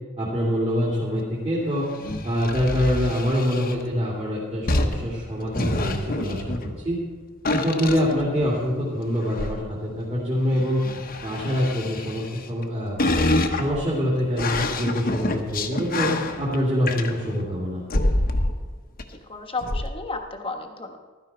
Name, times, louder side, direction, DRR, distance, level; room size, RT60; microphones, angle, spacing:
voice 1, 0.2-1.9 2.2-7.0 7.5-10.9 11.2-13.0 13.5-17.8, equal, 30° right, -7 dB, 3.0 m, -25 dB
sound 1, 1.8-3.8 4.7-7.0 7.5-8.7 9.2-9.6 10.5-12.6 13.0-17.4 17.9-18.7 19.0-19.1 19.6-19.9, left 2 dB, 45° left, 1.1 m, -27 dB
voice 2, 19.1-21.0, left 3 dB, 25° left, 4 dB, 1.3 m, -33 dB
15.5 x 13.0 x 4.4 m, 1.4 s
head